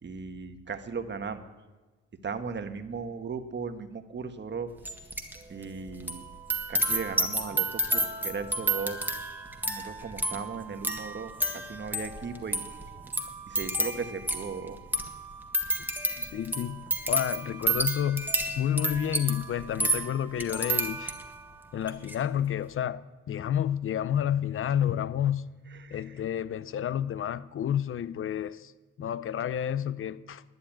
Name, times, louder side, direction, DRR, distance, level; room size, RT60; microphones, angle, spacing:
voice 1, 0.0-1.4 2.2-4.7 5.5-6.2 6.7-9.1 9.7-12.6 13.5-14.8 25.8-26.0, right 5 dB, 35° right, 1.4 m, -37 dB
sound 1, 4.8-5.4 5.6-21.4 21.8-22.1, right 1 dB, 5° right, 1.7 m, -31 dB
voice 2, 16.1-18.3 18.6-21.1 21.7-25.4 25.9-28.7 29.0-30.4, left 10 dB, 45° left, 0.6 m, -30 dB
11.5 x 9.5 x 10.0 m
cardioid pair, 90°, 30 cm